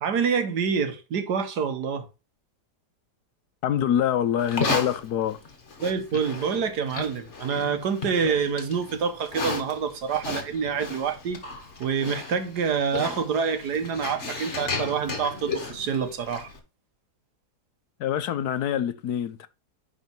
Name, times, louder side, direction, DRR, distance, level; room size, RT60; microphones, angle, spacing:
voice 1, 0.0-2.1 5.8-11.4 11.8-16.5, right 6 dB, 80° right, 1.7 m, -27 dB
voice 2, 3.6-5.4 18.0-19.5, left 10 dB, 75° left, 1.3 m, -25 dB
Livestock farm animals working animals, 4.4-16.6, left 4 dB, 45° left, 1.9 m, -34 dB
11.0 x 4.2 x 4.4 m
omnidirectional pair, 1.7 m